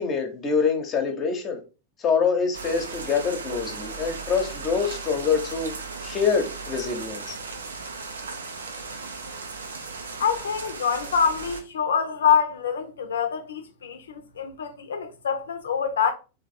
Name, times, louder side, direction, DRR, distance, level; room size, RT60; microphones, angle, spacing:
voice 1, 0.0-1.6 2.0-5.7 6.0-7.4, left 5 dB, 30° left, 1.0 m, -25 dB
sound 1, 2.5-11.6, right 4 dB, 70° right, 0.6 m, -36 dB
voice 2, 10.2-16.1, left 7 dB, 65° left, 0.7 m, -25 dB
3.5 x 2.9 x 4.2 m
figure-of-eight pair, 90°, 0 cm